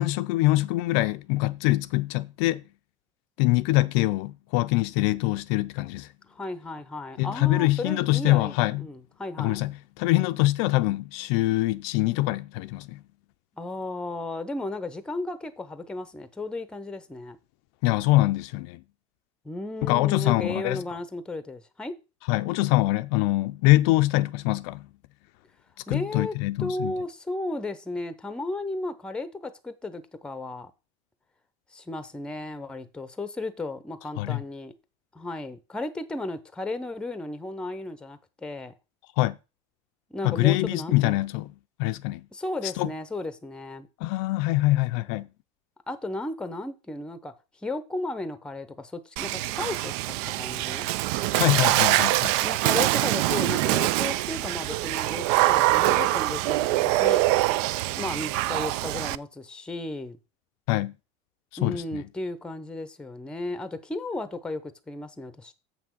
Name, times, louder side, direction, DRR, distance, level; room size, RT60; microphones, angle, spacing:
voice 1, 0.0-2.6 3.4-6.1 7.2-8.8 9.4-13.0 17.8-18.8 19.9-20.8 22.3-24.8 25.9-26.9 34.2-34.4 39.2-39.4 40.2-41.5 41.8-42.2 42.6-42.9 44.0-45.3 51.3-52.3 60.7-60.9 61.6-62.0, left 19 dB, 60° left, 0.5 m, -24 dB
voice 2, 6.3-9.6 13.6-17.4 19.4-21.9 25.9-30.7 31.7-34.7 35.1-38.7 40.1-41.2 42.3-43.9 45.9-47.3 47.6-50.9 52.4-57.2 57.9-60.2 61.6-65.5, left 2 dB, 5° left, 0.7 m, -34 dB
Water / Splash splatter, 49.2-59.2, right 17 dB, 60° right, 0.4 m, -24 dB
7.5 x 6.0 x 6.2 m
cardioid pair, 160°, 16 cm